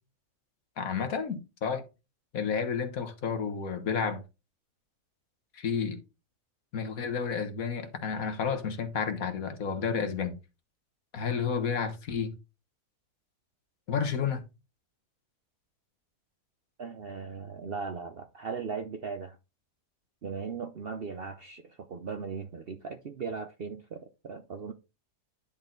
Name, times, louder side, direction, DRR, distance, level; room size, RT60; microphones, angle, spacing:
voice 1, 0.8-1.8 2.3-4.2 5.5-6.0 6.7-10.4 11.1-12.3 13.9-14.4, left 6 dB, 60° left, 1.6 m, -31 dB
voice 2, 16.8-19.4 20.2-24.7, right 5 dB, 55° right, 0.6 m, -38 dB
10.0 x 4.3 x 3.8 m
omnidirectional pair, 1.7 m